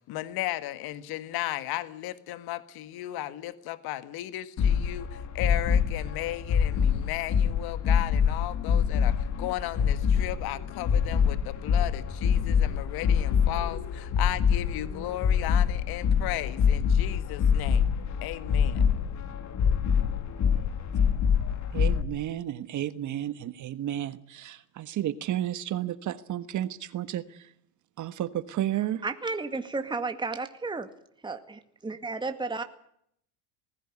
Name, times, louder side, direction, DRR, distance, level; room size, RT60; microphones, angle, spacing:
voice 1, 0.1-17.8 18.2-18.8, left 14 dB, 55° left, 13 dB, 1.8 m, -35 dB
sound 1, 4.6-22.0, left 7 dB, 40° left, 2.6 m, -25 dB
voice 2, 21.7-27.5 28.0-29.0, right 12 dB, 45° right, 13 dB, 1.4 m, -32 dB
voice 3, 29.0-30.9 31.2-32.6, right 3 dB, 10° right, 7 dB, 2.0 m, -33 dB
20.0 x 16.0 x 9.8 m, 0.70 s
supercardioid pair, 105°, 43 cm